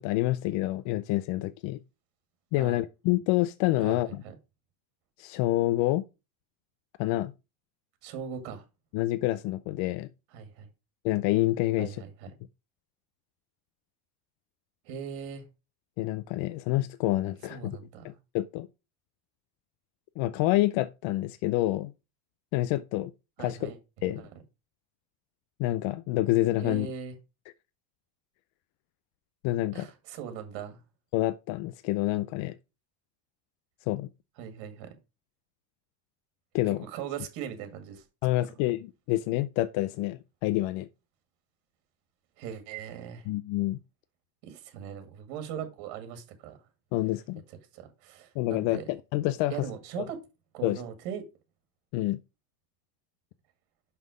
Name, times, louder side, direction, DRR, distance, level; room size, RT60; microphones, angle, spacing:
voice 1, 0.0-1.8 2.5-4.2 5.2-6.1 7.0-7.3 8.9-10.1 11.0-12.0 16.0-17.8 18.0-18.7 20.2-21.9 22.5-23.1 23.4-23.7 24.0-24.2 25.6-26.9 29.4-29.9 31.1-32.5 33.9-34.1 36.5-36.9 38.2-40.9 43.3-43.8 46.9-47.4 48.4-49.6 50.0-50.1 50.6-50.8 51.9-52.2, left 16 dB, 65° left, 0.6 m, -27 dB
voice 2, 8.0-8.6 10.3-10.7 11.8-12.3 14.9-15.5 17.5-18.2 23.4-23.8 24.2-24.3 26.6-27.1 29.7-30.8 34.4-34.9 36.8-38.0 42.4-43.3 44.4-46.6 47.7-48.8 49.5-50.2 50.5-51.2, right 8 dB, 80° right, 2.2 m, -39 dB
5.9 x 5.6 x 5.0 m
cardioid pair, 140°, 49 cm